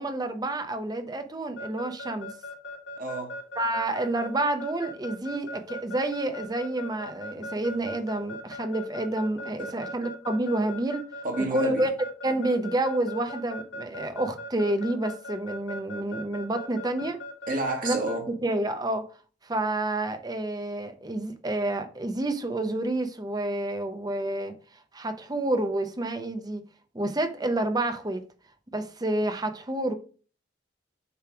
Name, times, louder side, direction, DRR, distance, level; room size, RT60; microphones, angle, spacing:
voice 1, 0.0-2.3 3.6-11.0 11.5-11.9 12.2-17.2 17.8-18.0 18.3-19.1 19.4-24.5 24.9-26.6 26.9-28.2 28.7-29.9, right 1 dB, 20° right, 0.8 m, -29 dB
Keyboard (musical) / Alarm, 1.6-18.2, left 1 dB, 90° left, 2.4 m, -38 dB
voice 2, 3.0-3.3 9.6-9.8 11.2-11.9 17.5-18.3, right 2 dB, 50° right, 1.6 m, -30 dB
6.9 x 3.2 x 6.0 m
head